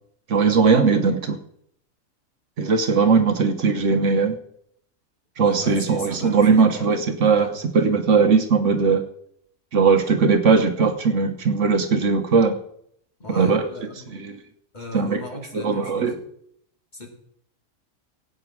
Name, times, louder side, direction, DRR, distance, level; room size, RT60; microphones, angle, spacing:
voice 1, 0.3-1.4 2.6-4.4 5.4-9.0 9.7-12.6 13.3-13.7 14.1-14.4 14.9-15.2 15.5-16.1, right 5 dB, 60° right, 7 dB, 1.3 m, -19 dB
voice 2, 5.4-6.9 7.4-7.5 13.2-14.1 14.7-16.2 16.9-17.1, equal, 30° left, 2 dB, 2.4 m, -36 dB
17.0 x 8.8 x 4.8 m, 0.70 s
omnidirectional pair, 1.5 m